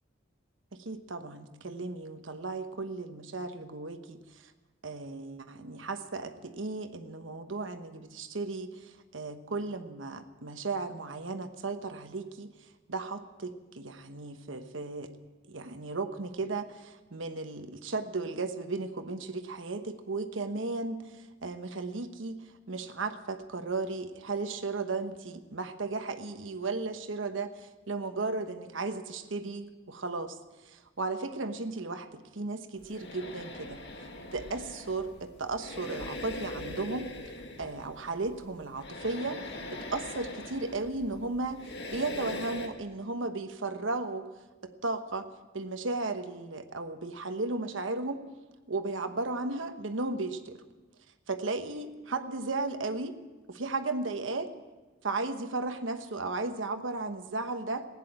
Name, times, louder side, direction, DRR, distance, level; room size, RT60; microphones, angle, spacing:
voice 1, 0.7-4.5 4.8-12.5 12.9-15.1 15.5-27.5 27.9-30.4 30.6-33.8 34.3-37.1 37.6-39.4 39.7-44.3 44.6-45.3 45.5-48.2 48.7-50.6 51.3-53.1 53.5-54.5 55.0-57.9, right 3 dB, 80° right, 8 dB, 1.1 m, -35 dB
sound 1, 32.8-42.7, left 1 dB, 60° left, 1.8 m, -42 dB
16.0 x 10.0 x 8.7 m, 1.2 s
head